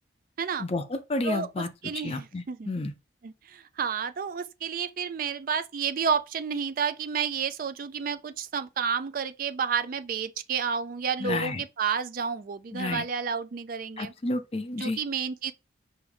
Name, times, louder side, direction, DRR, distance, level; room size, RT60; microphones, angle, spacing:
voice 1, 0.6-1.7 2.0-2.9 11.2-11.6 12.7-13.0 14.0-15.0, left 2 dB, 30° left, 0.4 m, -31 dB
voice 2, 1.2-2.7 3.2-14.1 14.8-15.5, right 6 dB, 45° right, 0.3 m, -31 dB
4.9 x 2.6 x 3.4 m
head